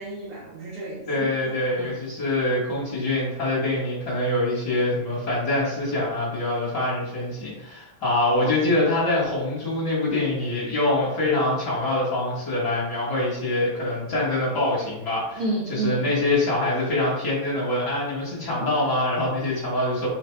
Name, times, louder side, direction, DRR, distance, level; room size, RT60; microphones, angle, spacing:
voice 1, 0.0-2.0 15.4-16.0 18.6-18.7, right 3 dB, 75° right, -3 dB, 1.2 m, -31 dB
voice 2, 1.1-15.4 15.7-20.1, left 2 dB, 45° left, -7 dB, 1.7 m, -24 dB
4.5 x 2.5 x 4.5 m, 0.90 s
omnidirectional pair, 3.3 m